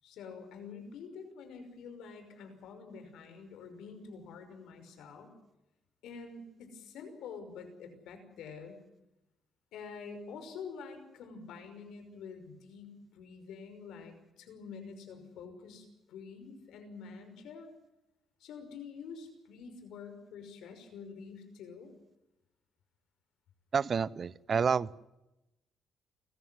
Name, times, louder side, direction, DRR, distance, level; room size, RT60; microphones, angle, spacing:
voice 1, 0.0-5.3 6.0-8.8 9.7-17.7 18.4-21.9, left 5 dB, 85° left, 7 dB, 5.8 m, -47 dB
voice 2, 23.7-25.1, right 6 dB, 40° right, 20 dB, 0.7 m, -29 dB
30.0 x 14.5 x 7.8 m, 0.95 s
cardioid pair, 110°, 0 cm